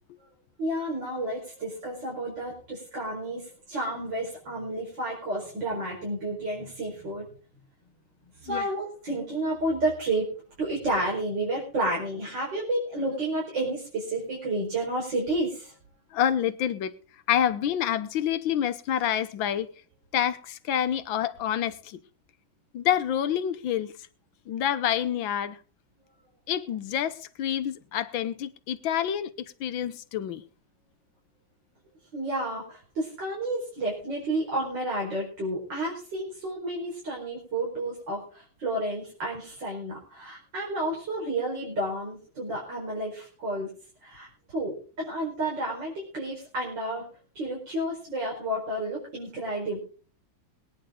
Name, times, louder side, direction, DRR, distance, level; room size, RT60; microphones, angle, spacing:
voice 1, 0.6-7.3 8.4-10.3 10.6-15.7 32.1-43.7 44.0-47.1 47.4-49.8, right 1 dB, 55° right, 5.4 m, -31 dB
voice 2, 16.1-16.9 17.3-19.7 20.1-22.0 22.7-23.9 24.5-25.6 26.5-29.3 29.6-30.4, left 10 dB, 70° left, 1.6 m, -27 dB
22.0 x 10.0 x 3.8 m
omnidirectional pair, 2.3 m